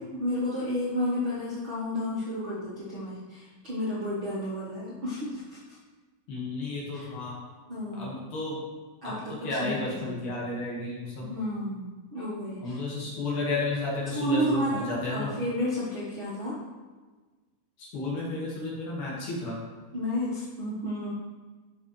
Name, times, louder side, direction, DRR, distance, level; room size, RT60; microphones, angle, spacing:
voice 1, 0.0-5.6 6.9-7.1 7.7-8.2 9.0-9.7 10.0-10.3 11.2-12.8 14.1-16.6 19.9-21.1, left 1 dB, 50° right, -9 dB, 1.5 m, -31 dB
voice 2, 6.3-7.4 8.0-8.6 9.0-9.1 9.4-11.3 12.6-15.3 17.8-19.6, left 2 dB, 60° left, -4 dB, 2.9 m, -32 dB
12.5 x 5.2 x 3.2 m, 1.3 s
omnidirectional pair, 4.5 m